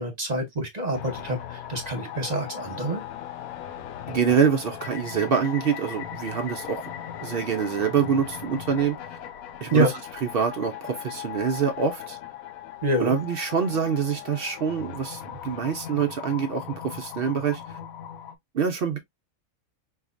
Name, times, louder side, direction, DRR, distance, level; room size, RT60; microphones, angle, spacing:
voice 1, 0.0-3.0 9.7-9.9 12.8-13.1, right 1 dB, 35° right, 0.9 m, -26 dB
sound 1, 0.9-18.4, left 10 dB, 80° left, 1.0 m, -38 dB
voice 2, 4.1-6.8 7.2-9.2 9.6-9.9 10.3-12.2 13.0-17.8 18.5-19.0, right 7 dB, 65° right, 0.5 m, -25 dB
4.0 x 2.8 x 2.4 m
omnidirectional pair, 1.5 m